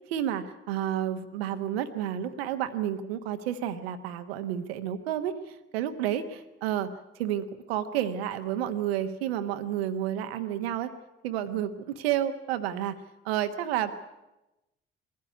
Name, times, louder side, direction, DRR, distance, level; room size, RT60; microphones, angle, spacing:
voice 1, 0.1-10.9 11.2-13.9, right 10 dB, 70° right, 10 dB, 1.2 m, -31 dB
21.5 x 15.0 x 9.4 m, 0.97 s
figure-of-eight pair, 50°, 31 cm